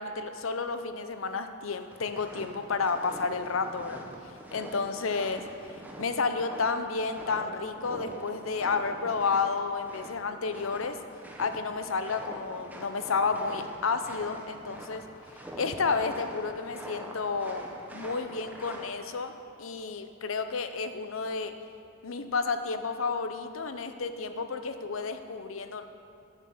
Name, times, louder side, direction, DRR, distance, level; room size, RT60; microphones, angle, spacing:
voice 1, 0.0-11.0 11.4-15.1 15.6-17.7 17.9-19.3 19.6-21.6 22.0-25.8, left 4 dB, 90° left, 9 dB, 0.7 m, -31 dB
sound 1, 1.9-18.9, right 1 dB, 10° right, 1.1 m, -45 dB
10.0 x 7.5 x 7.1 m, 2.6 s
head